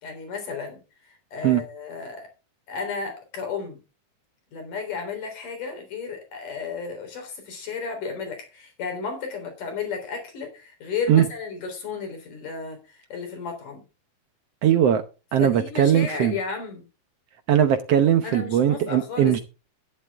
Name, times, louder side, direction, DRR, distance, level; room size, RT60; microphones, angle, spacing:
voice 1, 0.0-0.8 1.1-2.3 2.7-3.8 4.5-13.8 15.4-16.9 18.2-19.4, left 5 dB, 90° left, 5.3 m, -33 dB
voice 2, 14.6-15.0 15.3-16.4 17.5-19.4, right 10 dB, 65° right, 1.6 m, -19 dB
12.0 x 11.0 x 3.6 m
omnidirectional pair, 3.6 m